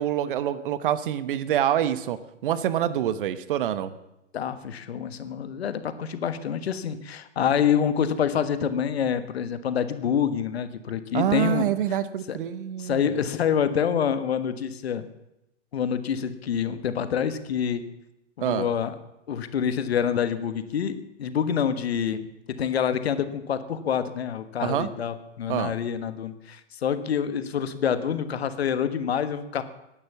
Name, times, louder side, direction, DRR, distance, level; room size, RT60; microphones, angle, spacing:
voice 1, 0.0-3.9 11.1-13.1 18.4-18.7 24.6-24.9 25.5-25.7, right 11 dB, 45° right, 14 dB, 1.1 m, -26 dB
voice 2, 4.3-11.7 12.3-12.4 12.8-15.0 15.7-17.8 18.4-18.9 19.3-22.2 22.6-29.6, left 8 dB, 55° left, 12 dB, 1.5 m, -27 dB
18.0 x 11.0 x 7.0 m, 0.88 s
figure-of-eight pair, 110°, 37 cm